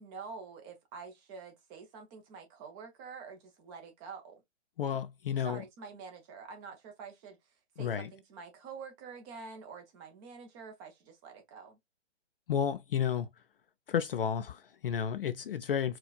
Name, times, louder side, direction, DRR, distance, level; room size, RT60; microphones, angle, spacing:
voice 1, 0.0-4.4 5.4-7.4 7.8-11.8, right 5 dB, 15° right, 0.6 m, -47 dB
voice 2, 4.8-5.6 7.8-8.1 12.5-13.3 13.9-16.0, left 8 dB, 50° left, 0.4 m, -32 dB
4.4 x 2.3 x 2.3 m
hypercardioid pair, 140°, 36 cm